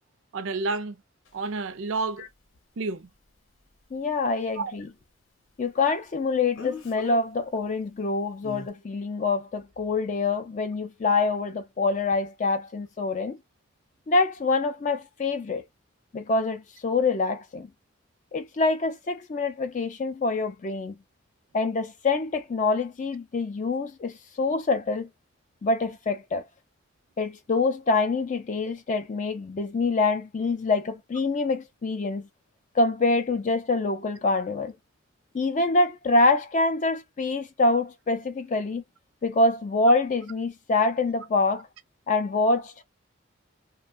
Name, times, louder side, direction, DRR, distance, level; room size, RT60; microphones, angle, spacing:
voice 1, 0.3-1.0 1.3-2.2 2.8-3.1 4.6-4.7, right 3 dB, 80° right, 0.5 m, -30 dB
Speech, 1.3-1.4 6.6-7.2 8.4-8.7, left 4 dB, 85° left, 0.8 m, -37 dB
voice 2, 3.9-4.9 5.6-13.4 14.1-15.6 16.1-17.7 18.3-20.9 21.5-25.1 25.6-26.4 27.2-32.3 32.7-34.7 35.3-38.8 39.2-41.7 42.1-42.8, left 3 dB, 40° left, 0.3 m, -25 dB
2.8 x 2.1 x 2.5 m
head